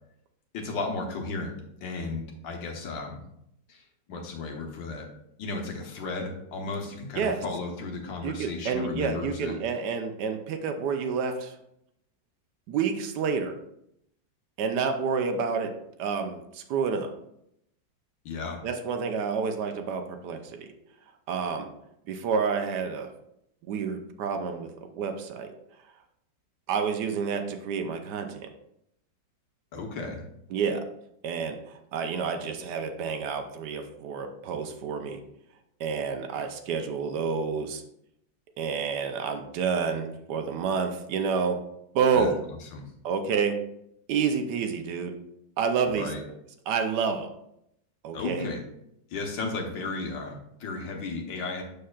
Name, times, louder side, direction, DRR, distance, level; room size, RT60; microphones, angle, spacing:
voice 1, 0.5-1.5 1.8-3.2 3.7-3.8 4.1-5.1 5.4-9.6 18.3-18.6 29.7-30.2 42.1-42.3 42.7-42.9 45.9-46.2 48.1-48.6 49.1-51.6, left 3 dB, 85° left, 1 dB, 1.8 m, -34 dB
voice 2, 8.2-11.6 12.7-13.6 14.6-17.1 18.6-20.7 21.3-21.7 22.1-23.1 23.6-25.5 26.7-28.5 30.5-30.9 31.2-35.2 35.8-37.8 38.6-41.6 41.9-42.4 43.0-43.6 44.1-45.2 45.6-46.3 46.7-47.3 48.0-48.5, right 6 dB, 75° right, 7 dB, 1.2 m, -29 dB
6.7 x 6.5 x 2.3 m, 0.78 s
omnidirectional pair, 1.9 m